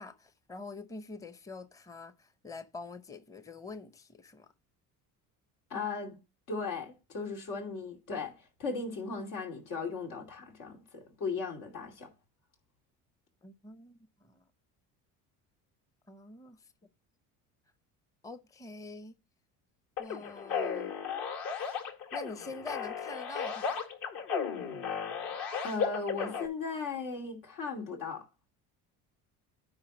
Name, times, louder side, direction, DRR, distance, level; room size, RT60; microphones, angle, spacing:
voice 1, 0.0-4.5 13.4-14.4 16.1-16.7 18.2-19.2 20.0-20.9 22.1-23.8, left 3 dB, 10° left, 0.6 m, -45 dB
voice 2, 5.7-6.2 6.5-8.3 8.6-12.1 25.6-28.2, left 4 dB, 85° left, 2.7 m, -37 dB
sound 1, 20.0-26.5, left 6 dB, 60° left, 1.9 m, -35 dB
9.7 x 3.7 x 6.1 m
supercardioid pair, 95°, 38 cm